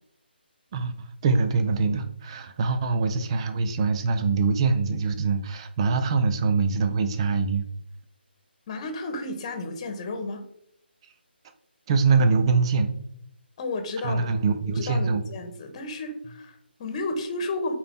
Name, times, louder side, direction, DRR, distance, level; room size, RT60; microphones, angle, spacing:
voice 1, 0.7-7.6 11.9-12.9 14.0-15.2, right 4 dB, 30° right, 8 dB, 0.8 m, -24 dB
voice 2, 8.7-10.4 13.6-14.3 14.7-17.7, left 2 dB, 30° left, 7 dB, 1.4 m, -32 dB
8.6 x 4.4 x 3.7 m, 0.72 s
figure-of-eight pair, 150°, 6 cm